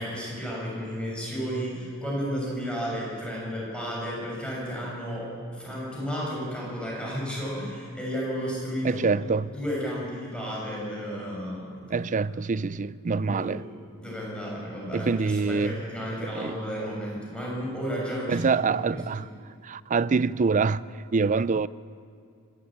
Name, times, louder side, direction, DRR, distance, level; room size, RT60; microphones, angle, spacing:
voice 1, 0.0-5.3 5.5-9.0 9.5-12.0 13.2-13.6 14.0-18.5 18.9-19.2, equal, 5° left, 6.9 m, -33 dB
voice 2, 8.8-9.5 11.9-13.6 14.9-15.7 16.3-16.6 18.3-19.3 19.6-20.8 21.1-21.7, right 4 dB, 35° right, 0.4 m, -25 dB
25.0 x 13.5 x 8.9 m
head